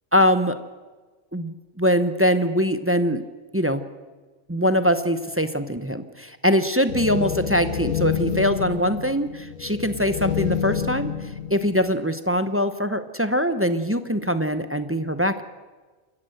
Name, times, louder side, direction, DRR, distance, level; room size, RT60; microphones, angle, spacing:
voice 1, 0.1-0.6 1.3-3.2 3.5-3.8 4.5-11.1 11.5-15.4, equal, 10° right, 10 dB, 0.7 m, -22 dB
sound 1, 6.9-12.0, left 8 dB, 80° left, 1.3 m, -28 dB
28.0 x 15.0 x 7.9 m, 1.4 s
omnidirectional pair, 1.4 m